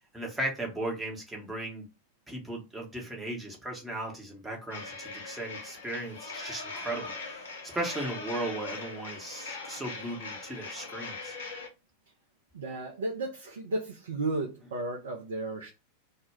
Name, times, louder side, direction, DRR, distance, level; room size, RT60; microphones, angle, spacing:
voice 1, 0.1-1.9 2.3-7.1 7.6-11.3, right 1 dB, 5° right, 0.8 m, -36 dB
sound 1, 4.7-11.7, left 3 dB, 65° left, 0.7 m, -41 dB
voice 2, 12.5-15.7, right 2 dB, 65° right, 0.4 m, -34 dB
2.1 x 2.1 x 3.3 m
figure-of-eight pair, 90°, 0 cm